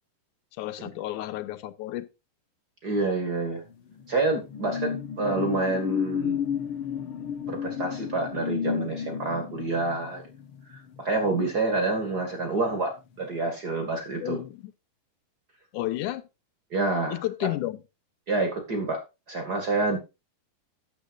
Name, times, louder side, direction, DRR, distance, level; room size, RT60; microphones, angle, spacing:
voice 1, 0.6-2.1 14.2-14.7 15.7-16.3 17.1-17.8, left 15 dB, 75° left, 2.0 m, -32 dB
voice 2, 2.8-3.6 4.1-6.4 7.5-10.2 10.7-14.4 16.7-17.2 18.3-19.0 19.3-20.0, right 3 dB, 35° right, 2.0 m, -28 dB
sound 1, 3.6-12.6 13.0-13.2, left 8 dB, 60° left, 1.5 m, -33 dB
13.0 x 10.5 x 2.5 m
omnidirectional pair, 4.0 m